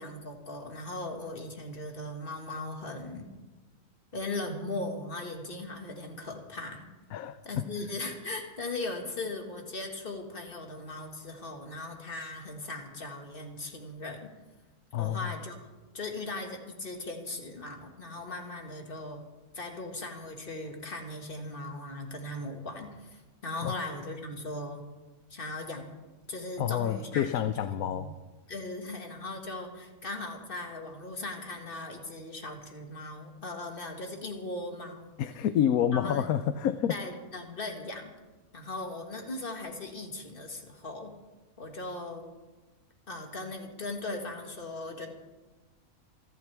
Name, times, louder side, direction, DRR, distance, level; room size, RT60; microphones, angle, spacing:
voice 1, 0.0-3.3 4.1-6.8 7.4-14.3 14.9-15.6 15.9-19.2 19.5-24.8 25.3-25.9 26.3-28.1 28.5-35.1 35.9-36.3 36.9-38.1 38.5-41.1 41.6-42.2 43.1-45.1, left 2 dB, 35° left, 3 dB, 2.0 m, -38 dB
voice 2, 7.1-7.6 14.9-15.3 23.6-23.7 26.6-28.1 35.2-36.9, left 9 dB, 75° left, 11 dB, 1.1 m, -28 dB
27.5 x 12.0 x 3.5 m, 1.2 s
omnidirectional pair, 1.5 m